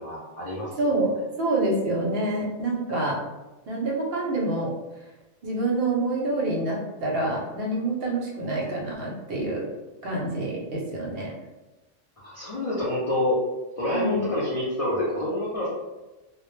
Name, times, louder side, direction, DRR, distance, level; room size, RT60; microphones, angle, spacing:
voice 1, 0.0-0.9 12.2-13.4 13.8-15.7, left 1 dB, 45° left, -8 dB, 0.4 m, -27 dB
voice 2, 0.8-3.2 3.7-4.7 5.4-9.7 10.0-11.3 13.9-14.2, right 2 dB, 60° right, -2 dB, 0.7 m, -27 dB
2.1 x 2.0 x 3.0 m, 1.1 s
omnidirectional pair, 1.3 m